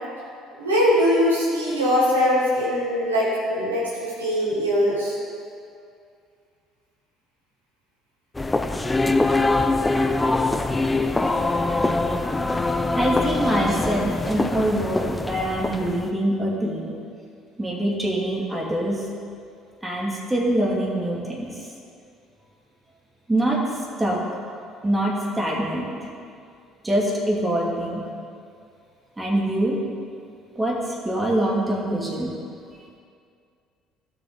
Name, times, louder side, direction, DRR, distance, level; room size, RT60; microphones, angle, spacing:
voice 1, 0.6-5.1, equal, 90° right, -8 dB, 2.9 m, -21 dB
sound 1, 8.3-16.1, left 2 dB, 15° left, 0.6 m, -23 dB
voice 2, 12.9-17.0 17.6-19.0 19.8-21.7 23.3-23.6 24.0-24.2 24.8-26.0 26.8-28.0 29.2-29.8 30.6-32.3, right 1 dB, 15° right, -3 dB, 2.5 m, -24 dB
16.5 x 6.7 x 4.0 m, 2.4 s
figure-of-eight pair, 55°, 0 cm